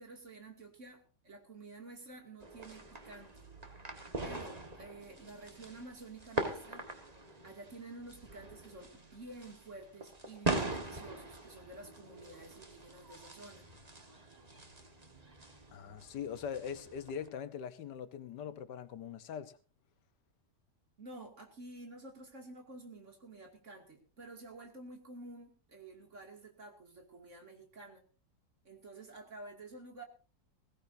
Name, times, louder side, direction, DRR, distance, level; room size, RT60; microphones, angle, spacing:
voice 1, 0.0-3.5 4.2-6.9 7.4-13.7 21.0-28.0 28.6-30.0, right 2 dB, 45° right, 2.9 m, -50 dB
sound 1, 2.4-17.3, right 2 dB, 25° right, 1.6 m, -42 dB
voice 2, 15.7-19.6, left 8 dB, 80° left, 1.6 m, -42 dB
20.5 x 16.5 x 2.7 m
omnidirectional pair, 1.8 m